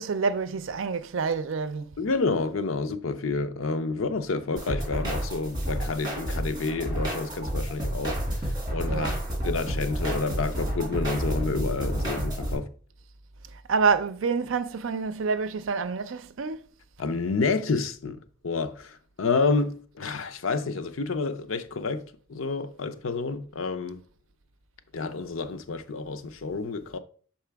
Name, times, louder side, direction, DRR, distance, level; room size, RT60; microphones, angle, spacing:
voice 1, 0.0-1.9 8.9-9.2 13.7-16.6, right 5 dB, 70° right, 0.5 m, -27 dB
voice 2, 2.0-8.2 8.7-9.1 9.4-12.7 17.0-18.2 18.4-22.0 22.3-24.0 24.9-27.0, left 4 dB, 80° left, 0.6 m, -29 dB
sound 1, 4.6-12.5, right 1 dB, 20° right, 2.5 m, -30 dB
6.6 x 4.3 x 3.4 m
head